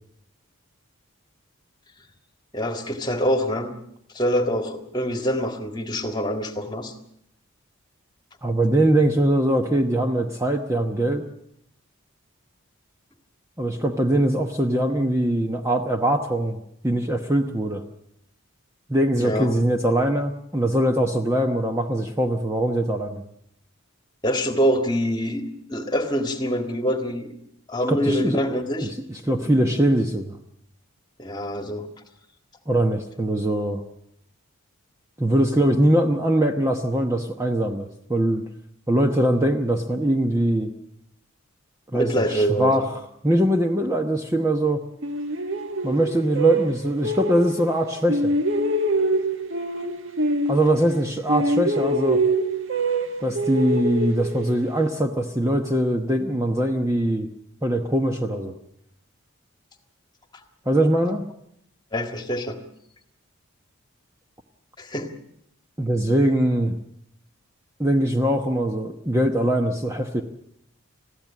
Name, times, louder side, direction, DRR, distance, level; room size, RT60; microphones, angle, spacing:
voice 1, 2.5-3.7 4.1-6.9 19.1-19.5 24.2-25.4 25.7-27.3 27.7-28.9 29.4-29.5 31.2-31.9 41.9-42.9 61.9-62.6 64.8-65.1, equal, 20° left, 6 dB, 1.8 m, -25 dB
voice 2, 8.4-11.2 13.6-16.6 16.8-17.8 18.9-23.2 27.9-28.4 28.8-30.4 32.7-33.8 35.2-38.4 38.9-40.7 41.9-42.9 43.2-44.8 45.8-48.3 50.5-52.2 53.2-57.3 57.6-58.5 60.7-61.2 65.8-66.8 67.8-70.2, right 1 dB, 15° right, 4 dB, 1.0 m, -22 dB
sound 1, 45.0-47.8 48.1-51.0 51.3-54.8, right 1 dB, 60° right, 1.7 m, -25 dB
21.5 x 15.0 x 8.5 m, 0.75 s
head